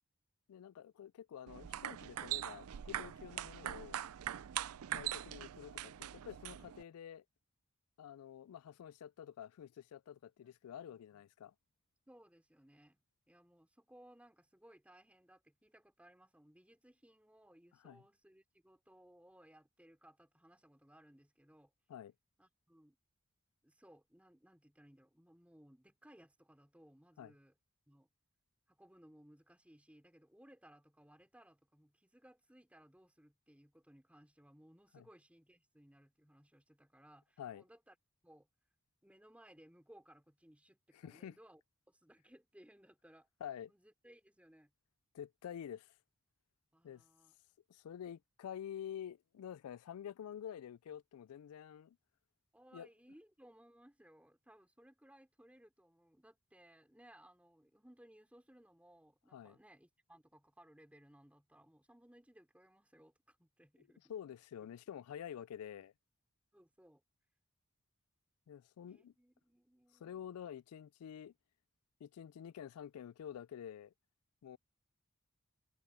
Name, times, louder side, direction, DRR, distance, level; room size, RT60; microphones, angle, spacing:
voice 1, 0.5-4.0 4.9-7.2 8.0-11.5 17.8-18.0 21.9-22.1 27.2-27.3 34.9-35.1 37.4-37.6 40.9-41.4 43.4-43.7 45.1-45.9 46.8-47.0 47.7-52.0 52.7-52.9 59.3-59.6 63.8-65.9 68.5-69.1 70.0-71.3 72.0-73.9 74.4-74.6, left 9 dB, 85° left, 0.3 m, -49 dB
sound 1, 1.5-6.8, right 11 dB, 85° right, 0.4 m, -42 dB
voice 2, 10.9-11.2 12.1-13.0 13.3-21.7 22.4-23.0 23.6-27.5 27.9-28.1 28.7-37.9 38.2-38.5 39.0-41.6 41.9-43.3 43.7-44.7 46.7-47.3 52.5-64.1 66.5-67.0 68.9-70.2, equal, 5° right, 3.0 m, -63 dB
head